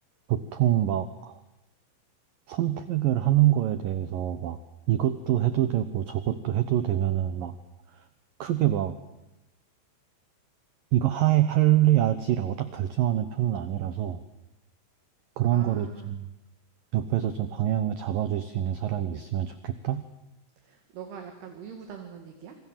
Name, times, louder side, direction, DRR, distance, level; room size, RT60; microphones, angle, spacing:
voice 1, 0.3-1.4 2.5-4.6 4.9-7.6 7.9-8.0 8.4-9.0 10.9-14.2 15.4-16.3 16.9-20.0, right 12 dB, 80° right, 11 dB, 2.0 m, -25 dB
voice 2, 15.5-16.1 20.6-22.6, right 7 dB, 60° right, 5 dB, 3.9 m, -43 dB
27.0 x 25.0 x 7.5 m, 0.88 s
omnidirectional pair, 5.7 m